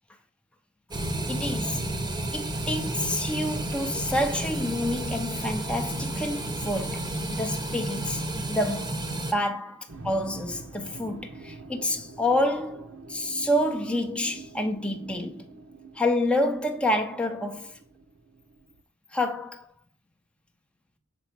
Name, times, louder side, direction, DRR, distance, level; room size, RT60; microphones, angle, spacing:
sound 1, 0.9-9.3, right 1 dB, 20° right, 0.9 m, -31 dB
voice 1, 1.3-1.8 2.3-9.0 9.3-15.5 15.9-17.8 19.1-19.7, left 1 dB, 5° left, 0.6 m, -28 dB
sound 2, 9.9-18.8, right 3 dB, 65° right, 0.9 m, -45 dB
6.1 x 4.5 x 4.4 m
head